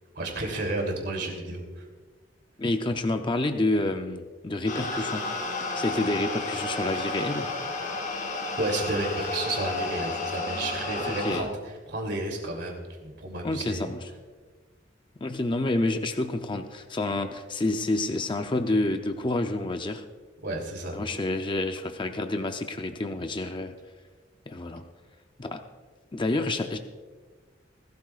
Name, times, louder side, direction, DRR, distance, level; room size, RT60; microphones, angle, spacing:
voice 1, 0.1-1.8 8.6-11.5 11.9-13.9 20.4-21.0, right 2 dB, 65° right, 1 dB, 3.1 m, -31 dB
voice 2, 2.6-5.3 5.8-7.5 11.1-11.5 13.4-14.1 15.2-20.0 20.9-23.7 24.5-24.8 25.4-25.6 26.1-26.8, left 2 dB, 25° left, 6 dB, 0.6 m, -28 dB
sound 1, 4.7-11.4, left 2 dB, 45° left, 2.4 m, -32 dB
20.0 x 13.0 x 2.4 m, 1.4 s
head